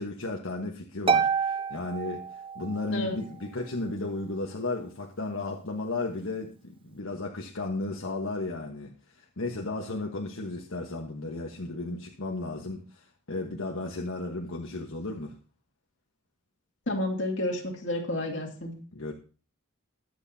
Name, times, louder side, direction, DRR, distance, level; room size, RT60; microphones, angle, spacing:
voice 1, 0.0-2.2 2.5-8.9 9.4-15.3 18.9-19.1, left 2 dB, 80° left, 0 dB, 1.3 m, -34 dB
Harp, 1.1-2.9, right 6 dB, 25° right, 0.5 m, -27 dB
voice 2, 16.9-18.7, left 1 dB, 60° left, 0 dB, 2.6 m, -30 dB
21.5 x 8.1 x 2.8 m, 0.39 s
head